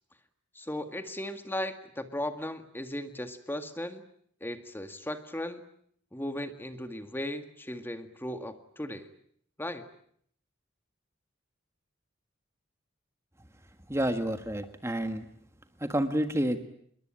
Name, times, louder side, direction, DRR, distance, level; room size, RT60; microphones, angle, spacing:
voice 1, 0.5-4.0 4.4-5.6 6.1-9.1 9.6-9.8, left 1 dB, 10° left, 8 dB, 1.9 m, -36 dB
voice 2, 13.9-15.3 15.8-16.6, right 1 dB, 15° right, 7 dB, 1.6 m, -29 dB
27.5 x 22.5 x 9.0 m, 0.66 s
head